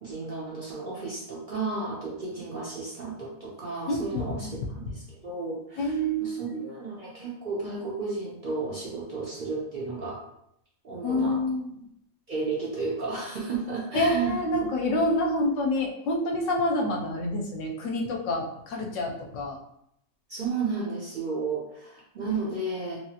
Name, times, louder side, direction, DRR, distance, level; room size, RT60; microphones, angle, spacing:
voice 1, 0.0-10.2 10.8-11.4 12.3-14.4 20.3-23.0, right 4 dB, 55° right, -5 dB, 0.5 m, -33 dB
voice 2, 3.9-4.6 5.8-6.6 11.0-11.8 13.9-19.6, left 1 dB, 70° left, 1 dB, 0.9 m, -27 dB
3.0 x 2.3 x 2.8 m, 0.76 s
omnidirectional pair, 1.4 m